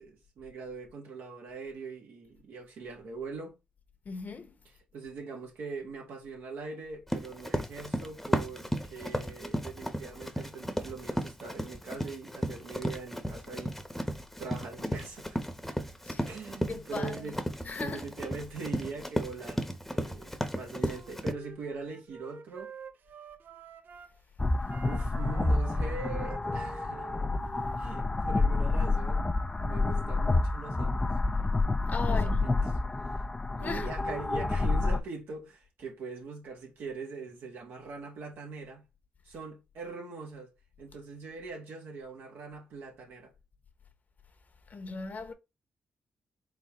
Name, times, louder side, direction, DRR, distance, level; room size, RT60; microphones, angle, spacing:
voice 1, 0.0-3.6 4.9-13.8 14.4-15.4 16.2-17.4 17.8-22.7 24.8-27.1 27.8-30.9 32.1-32.5 33.5-38.8 39.2-40.5 40.8-43.3, right 4 dB, 80° right, 1.6 m, -42 dB
voice 2, 4.1-4.5 16.0-16.3 16.7-17.3 17.6-18.0 31.9-32.5 33.6-33.9 44.7-45.3, left 4 dB, 50° left, 1.0 m, -38 dB
Run, 7.1-21.3, equal, 5° left, 1.0 m, -34 dB
Wind instrument woodwind instrument, 20.8-24.2 24.6-28.3, right 7 dB, 60° right, 0.6 m, -48 dB
sound 1, 24.4-35.0, left 2 dB, 20° left, 0.5 m, -29 dB
4.1 x 3.8 x 3.0 m
supercardioid pair, 50°, 4 cm